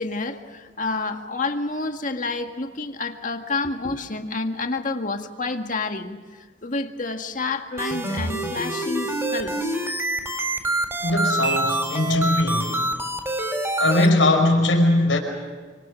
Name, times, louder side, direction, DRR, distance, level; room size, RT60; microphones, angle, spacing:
voice 1, 0.0-9.8, left 3 dB, 45° left, 1.9 m, -29 dB
sound 1, 7.8-14.1, right 1 dB, 15° right, 4.0 m, -26 dB
voice 2, 11.0-12.9 13.8-15.2, left 1 dB, 90° left, 5.4 m, -20 dB
28.5 x 25.5 x 6.5 m
head